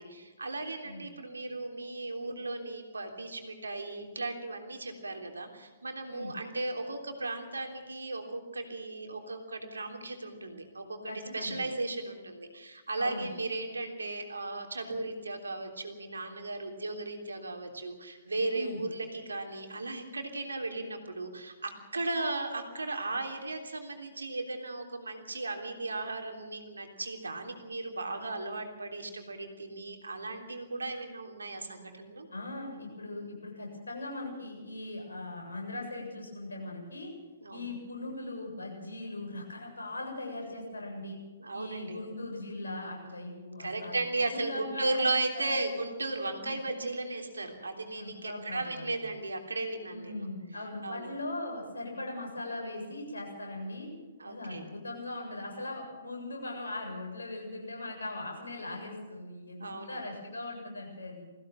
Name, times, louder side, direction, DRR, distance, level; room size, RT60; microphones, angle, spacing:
voice 1, 0.0-32.3 37.4-37.7 41.4-42.0 43.6-50.3 50.8-51.1 54.2-54.7 59.6-60.0, right 2 dB, 75° right, 4 dB, 3.4 m, -36 dB
voice 2, 11.1-11.6 13.0-13.3 18.5-18.8 32.3-37.1 37.5-41.2 41.5-44.0 44.3-45.7 46.3-46.6 48.0-48.8 49.9-53.9 54.2-61.2, left 2 dB, 75° left, 0 dB, 7.6 m, -39 dB
21.0 x 16.0 x 7.7 m, 1.3 s
figure-of-eight pair, 120°, 0 cm